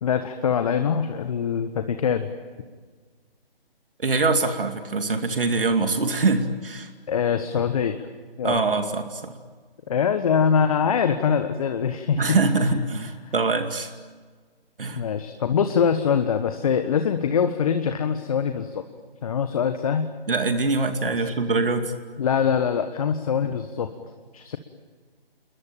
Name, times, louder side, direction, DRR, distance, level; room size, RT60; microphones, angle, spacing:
voice 1, 0.0-2.3 7.1-8.0 8.4-8.6 9.9-12.4 14.9-18.8 19.2-20.1 22.2-23.9 24.3-24.6, left 7 dB, 35° left, 8 dB, 1.4 m, -23 dB
voice 2, 4.0-6.9 8.4-9.3 12.2-13.9 14.8-15.0 20.3-21.9, right 3 dB, 60° right, 7 dB, 2.5 m, -23 dB
29.0 x 22.0 x 9.0 m, 1.5 s
figure-of-eight pair, 145°, 30 cm